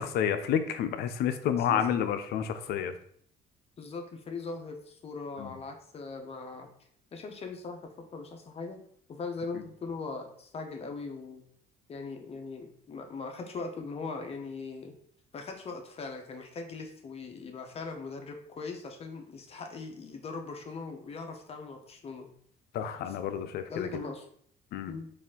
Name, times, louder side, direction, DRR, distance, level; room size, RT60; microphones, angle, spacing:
voice 1, 0.0-2.9 5.4-5.5 22.7-23.9 24.7-24.9, left 9 dB, 70° left, 10 dB, 0.5 m, -30 dB
voice 2, 3.8-6.7 7.1-8.8 9.1-11.4 11.9-14.9 15.3-22.3 23.0-24.3 24.9-25.1, left 4 dB, 35° left, 4 dB, 0.7 m, -40 dB
4.2 x 2.5 x 3.6 m, 0.62 s
cardioid pair, 110°, 17 cm